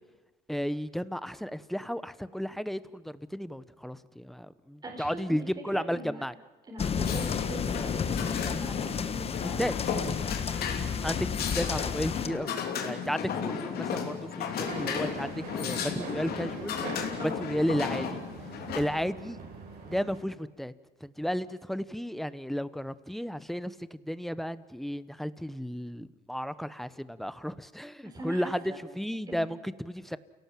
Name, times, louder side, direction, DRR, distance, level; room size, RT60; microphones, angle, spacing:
voice 1, 0.5-6.3 9.4-9.7 11.0-12.5 12.8-16.8 17.2-18.2 18.7-19.4 19.8-20.7 21.0-30.2, equal, ahead, 15 dB, 0.9 m, -33 dB
voice 2, 4.8-5.5 5.7-6.3 6.7-9.3 17.2-17.4 18.6-18.7 28.0-28.8 29.3-29.5, right 1 dB, 25° right, 0 dB, 4.3 m, -41 dB
sound 1, 6.8-12.3, left 6 dB, 35° left, 1.2 m, -32 dB
sound 2, 7.0-18.8, left 6 dB, 65° left, 3.1 m, -35 dB
sound 3, 14.6-20.2, right 4 dB, 70° right, 5.9 m, -43 dB
29.5 x 17.5 x 7.6 m, 1.3 s
cardioid pair, 110°, 17 cm